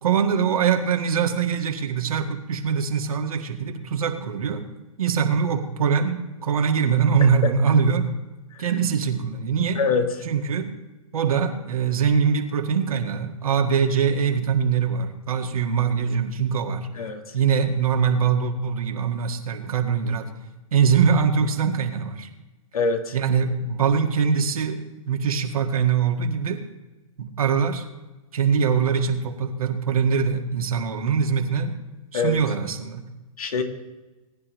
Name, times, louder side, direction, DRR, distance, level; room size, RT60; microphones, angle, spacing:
voice 1, 0.0-4.6 5.0-8.1 8.6-9.8 10.2-10.7 11.1-16.9 17.3-20.3 20.7-22.3 23.1-26.6 27.2-27.9 28.3-31.8 32.1-33.1, right 6 dB, 75° right, 3 dB, 1.8 m, -23 dB
voice 2, 9.8-10.1 17.0-17.2 22.7-23.1 32.1-32.4 33.4-33.6, left 4 dB, 80° left, 4 dB, 2.0 m, -23 dB
20.5 x 10.5 x 3.1 m, 1.1 s
hypercardioid pair, 115°, 18 cm